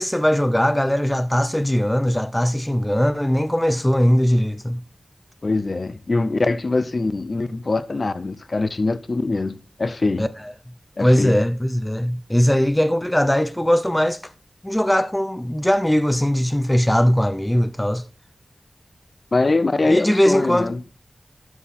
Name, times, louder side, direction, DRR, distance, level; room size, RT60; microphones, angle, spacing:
voice 1, 0.0-4.8 10.2-10.3 11.0-14.2 14.6-18.0 19.8-20.7, equal, 10° left, 0.5 m, -20 dB
voice 2, 5.4-10.3 11.0-11.4 19.3-20.8, left 3 dB, 50° left, 0.6 m, -23 dB
12.5 x 4.5 x 4.3 m
wide cardioid pair, 95°, 0 cm